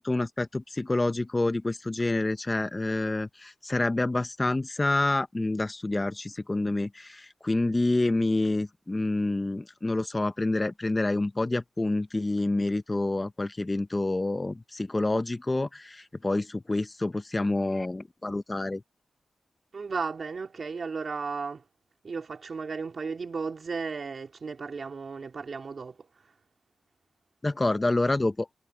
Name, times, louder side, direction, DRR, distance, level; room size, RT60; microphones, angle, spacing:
voice 1, 0.0-18.8 27.4-28.5, left 2 dB, 20° left, 0.7 m, -28 dB
voice 2, 19.7-21.6 22.0-26.0, right 5 dB, 50° right, 3.3 m, -34 dB
wide cardioid pair, 135°, 0 cm